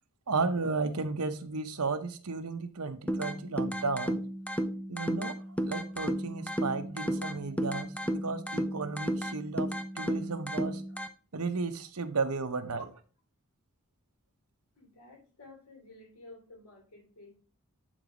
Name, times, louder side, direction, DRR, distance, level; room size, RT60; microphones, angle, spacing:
voice 1, 0.3-4.2 4.9-10.8 11.3-12.8, right 4 dB, 80° right, 8 dB, 0.9 m, -34 dB
sound 1, 3.1-11.1, equal, 5° left, 0.5 m, -33 dB
voice 2, 14.8-17.4, left 1 dB, 85° left, 1 dB, 3.4 m, -52 dB
9.0 x 4.0 x 5.0 m, 0.38 s
head